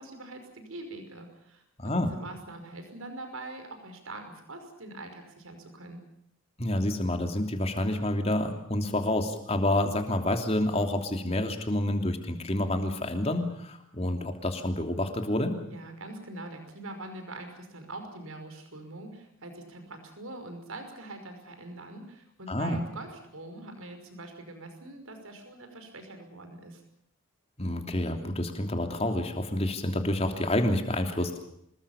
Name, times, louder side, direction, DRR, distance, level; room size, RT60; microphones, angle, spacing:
voice 1, 0.0-6.0 15.7-26.8, right 2 dB, 70° right, 6 dB, 5.5 m, -43 dB
voice 2, 1.8-2.1 6.6-15.6 22.5-22.8 27.6-31.5, left 1 dB, 30° left, 5 dB, 3.1 m, -28 dB
26.0 x 21.0 x 7.2 m, 0.73 s
head